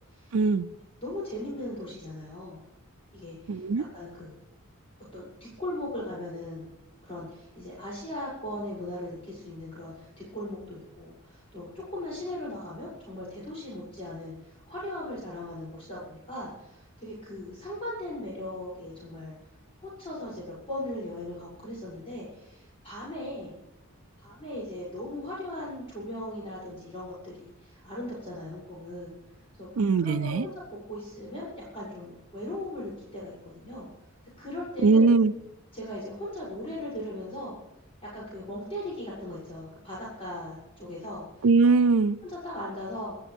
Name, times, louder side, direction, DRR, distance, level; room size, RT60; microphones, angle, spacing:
voice 1, 0.3-0.7 3.5-3.8 29.8-30.4 34.8-35.3 41.4-42.2, right 4 dB, 85° right, 9 dB, 0.5 m, -21 dB
voice 2, 1.0-2.6 3.1-4.4 5.1-6.7 7.0-19.3 19.8-23.5 24.2-29.1 29.6-33.9 34.4-35.0 35.7-37.6 38.0-41.5 42.2-43.2, left 1 dB, 30° left, -7 dB, 7.3 m, -38 dB
27.5 x 13.5 x 3.5 m, 0.96 s
head